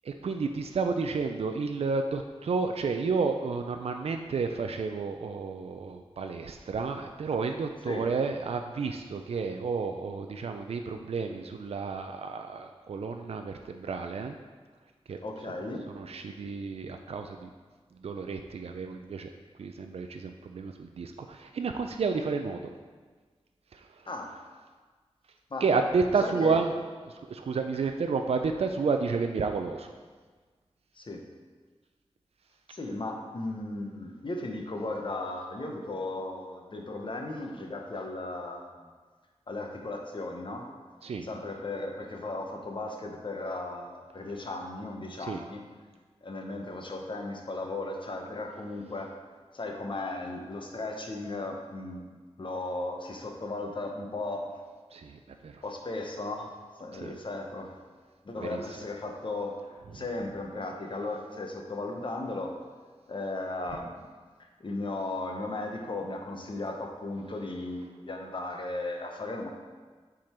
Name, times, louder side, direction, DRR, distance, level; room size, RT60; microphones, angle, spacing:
voice 1, 0.0-14.4 15.1-15.2 15.9-17.5 18.0-19.3 19.6-22.7 23.7-24.1 25.6-26.8 27.1-29.9 41.0-41.3 45.2-45.4 54.9-55.6 56.9-57.1 58.4-58.6 59.9-60.0, right 4 dB, 70° right, 5 dB, 0.4 m, -31 dB
voice 2, 15.2-15.9 24.1-24.3 25.5-25.6 26.2-26.6 30.9-31.2 32.7-38.9 39.5-40.7 41.2-45.6 46.2-49.1 49.5-54.5 55.6-56.5 56.8-57.7 58.2-59.6 59.9-62.6 63.1-64.1 64.6-69.5, left 2 dB, 50° left, 2 dB, 0.9 m, -36 dB
7.6 x 3.7 x 4.3 m, 1.4 s
wide cardioid pair, 85°, 11 cm